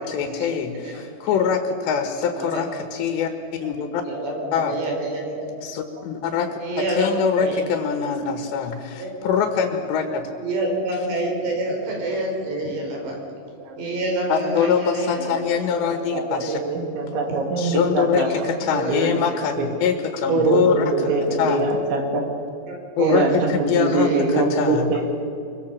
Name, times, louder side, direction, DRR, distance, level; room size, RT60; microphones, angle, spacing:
voice 1, 0.1-3.3 3.6-4.0 4.5-4.8 5.6-6.6 7.0-10.3 14.3-16.6 17.6-21.1 21.4-21.7 23.0-25.0, left 7 dB, 80° left, 5 dB, 3.6 m, -23 dB
voice 2, 2.2-2.7 4.0-5.5 6.6-7.7 8.9-9.1 10.4-13.2 13.8-15.4 16.4-16.5 18.2-19.1 21.0-21.1 22.7-23.4 23.7-24.2, right 1 dB, 75° right, 1 dB, 6.5 m, -28 dB
voice 3, 15.7-18.5 18.7-19.2 19.6-19.7 20.3-22.3 23.0-25.0, right 3 dB, 90° right, 2 dB, 5.2 m, -23 dB
25.0 x 23.0 x 7.4 m, 2.6 s
omnidirectional pair, 5.1 m